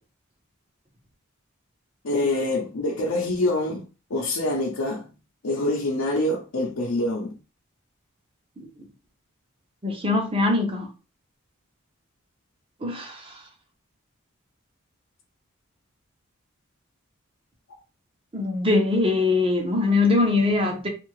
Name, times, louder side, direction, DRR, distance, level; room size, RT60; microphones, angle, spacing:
voice 1, 2.0-3.8 4.1-5.1 5.4-7.3, left 1 dB, 85° left, 0.7 m, -25 dB
voice 2, 9.8-10.9 12.8-13.3 18.3-20.9, left 3 dB, 25° right, 0.7 m, -22 dB
2.7 x 2.4 x 3.1 m
head